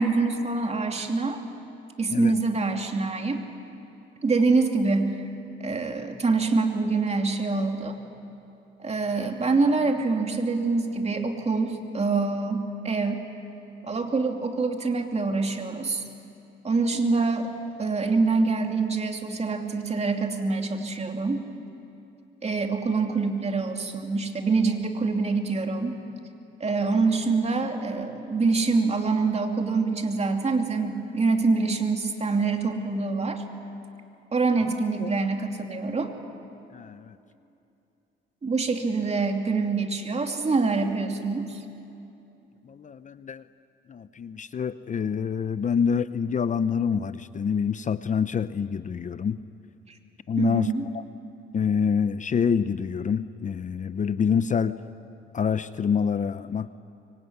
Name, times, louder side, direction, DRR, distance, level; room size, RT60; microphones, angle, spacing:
voice 1, 0.0-1.4 2.0-3.4 4.2-5.2 5.6-7.9 8.8-13.2 13.8-16.0 16.6-17.5 17.8-21.5 22.4-26.0 26.6-33.4 34.3-36.1 38.4-41.6 50.4-50.9, right 3 dB, 35° right, 4 dB, 2.8 m, -25 dB
voice 2, 36.7-37.2 42.6-43.4 43.9-49.4 50.3-51.0 51.5-54.8 55.3-56.7, left 6 dB, 40° left, 13 dB, 0.7 m, -26 dB
24.5 x 24.0 x 9.6 m, 2.7 s
cardioid pair, 90°, 20 cm